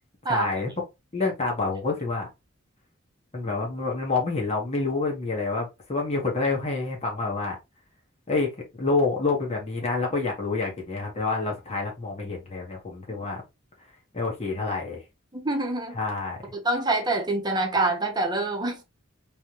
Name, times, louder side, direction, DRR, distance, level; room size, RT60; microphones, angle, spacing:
voice 1, 0.3-0.7 1.1-2.3 3.3-7.6 8.3-8.5 8.8-13.4 14.1-15.0 15.9-16.4, left 3 dB, 35° left, 1.6 m, -27 dB
voice 2, 15.3-16.0 16.6-18.8, right 2 dB, 20° right, 1.1 m, -25 dB
4.1 x 3.5 x 3.1 m
head